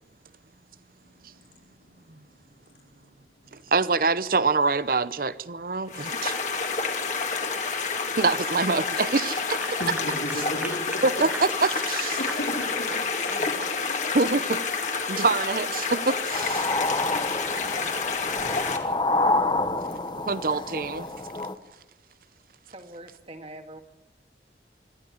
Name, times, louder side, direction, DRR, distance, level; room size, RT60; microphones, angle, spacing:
voice 1, 1.0-3.2 3.5-3.7 9.7-11.2 12.2-13.1, equal, 90° left, 3.7 m, -38 dB
voice 2, 3.5-6.4 8.2-9.6 11.0-11.3 11.6-12.2 14.1-14.6 15.1-16.7 20.3-21.1, right 3 dB, 50° right, 0.8 m, -25 dB
sound 1, 5.9-18.8, left 4 dB, 40° left, 2.4 m, -29 dB
Clapping / Applause, 8.9-13.8, right 2 dB, 10° right, 0.9 m, -40 dB
voice 3, 13.2-13.7 22.7-23.8, right 1 dB, 35° right, 2.0 m, -44 dB
sound 2, 16.3-21.5, left 2 dB, 25° left, 1.1 m, -28 dB
25.5 x 12.5 x 9.8 m
head